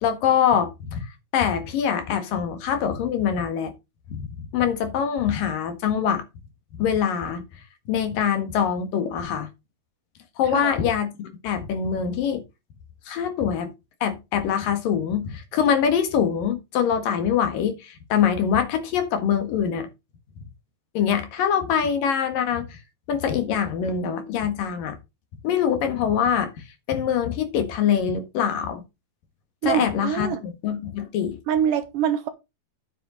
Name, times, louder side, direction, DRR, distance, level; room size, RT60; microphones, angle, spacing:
voice 1, 0.0-1.1 1.3-3.7 4.1-4.3 4.5-6.3 6.8-7.4 7.9-9.5 10.4-12.4 13.1-13.7 14.0-19.9 20.9-22.8 23.1-25.0 25.4-26.5 26.9-28.8 29.6-30.3 30.6-31.4, left 8 dB, 70° left, 3.2 m, -24 dB
voice 2, 29.6-30.4 31.5-32.3, right 9 dB, 70° right, 2.5 m, -24 dB
9.9 x 8.4 x 3.9 m
omnidirectional pair, 4.3 m